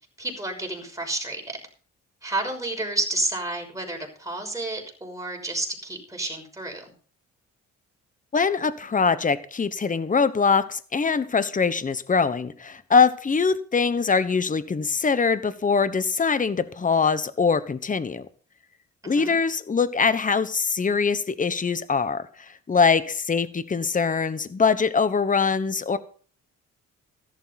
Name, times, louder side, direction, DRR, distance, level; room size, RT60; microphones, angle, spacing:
voice 1, 0.2-1.6 2.2-6.9 19.0-19.4, right 2 dB, 10° right, 1 dB, 6.1 m, -30 dB
voice 2, 8.3-18.2 19.0-26.0, left 5 dB, 25° left, 14 dB, 1.2 m, -23 dB
14.5 x 12.0 x 4.2 m, 0.42 s
cardioid pair, 90°, 30 cm